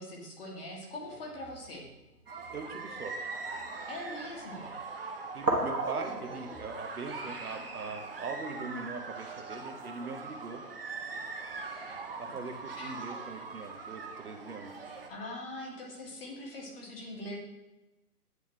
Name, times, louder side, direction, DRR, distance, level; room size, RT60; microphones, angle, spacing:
voice 1, 0.0-1.9 3.9-4.7 12.8-12.9 15.1-17.4, left 1 dB, 35° left, -2 dB, 1.6 m, -42 dB
sound 1, 0.9-1.7 2.3-2.6 3.4-3.6 5.3-6.6, right 2 dB, 90° right, 1.5 m, -34 dB
sound 2, 2.3-15.1, right 4 dB, 40° right, 0.6 m, -42 dB
voice 2, 2.5-3.2 5.3-10.6 12.2-14.7, right 4 dB, 65° right, 5 dB, 0.9 m, -41 dB
9.2 x 3.6 x 3.1 m, 1.0 s
figure-of-eight pair, 135°, 47 cm